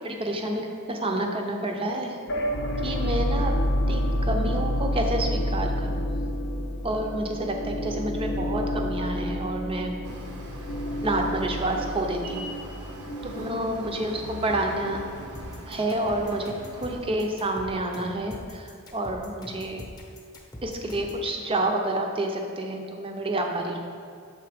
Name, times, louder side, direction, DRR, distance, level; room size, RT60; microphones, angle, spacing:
voice 1, 0.0-2.2 2.8-3.5 3.9-6.0 6.8-10.0 11.0-12.5 13.2-15.0 15.7-19.8 20.6-23.8, right 1 dB, 25° right, 2 dB, 0.6 m, -29 dB
sound 1, 2.3-14.2, equal, 50° left, 0.6 m, -29 dB
sound 2, 10.0-18.4, right 1 dB, 75° right, 0.8 m, -42 dB
sound 3, 15.3-21.3, equal, 15° left, 0.9 m, -43 dB
6.9 x 3.8 x 5.0 m, 2.2 s
head